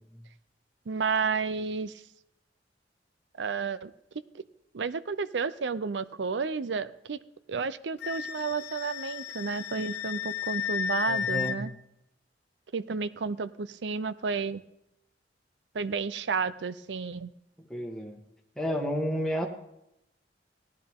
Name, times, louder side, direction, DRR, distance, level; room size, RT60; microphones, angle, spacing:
voice 1, 0.9-1.9 3.4-3.9 4.7-7.2 7.5-11.7 12.7-14.6 15.7-17.3, right 5 dB, 90° right, 15 dB, 0.6 m, -31 dB
Wind instrument woodwind instrument, 8.0-11.6, left 8 dB, 75° left, 1.2 m, -33 dB
voice 2, 11.1-11.7 17.6-18.2 18.6-19.5, equal, 5° left, 1 dB, 1.6 m, -31 dB
16.5 x 10.5 x 3.7 m, 0.83 s
head